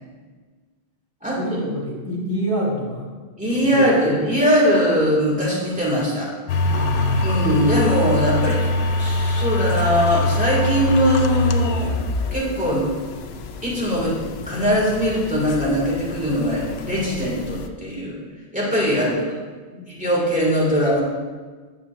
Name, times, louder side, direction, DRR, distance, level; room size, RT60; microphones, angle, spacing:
voice 1, 1.4-3.1 3.6-3.8 6.6-7.4 19.0-19.2 19.7-19.9, equal, 20° left, -4 dB, 1.5 m, -27 dB
voice 2, 3.4-6.3 7.2-8.7 9.0-11.9 12.3-12.8 13.6-14.2 14.5-18.1 18.5-19.2 19.9-21.0, equal, 5° right, -6 dB, 2.1 m, -21 dB
sound 1, 6.5-17.7, left 2 dB, 75° left, 0.8 m, -24 dB
9.7 x 7.0 x 2.6 m, 1.4 s
omnidirectional pair, 1.1 m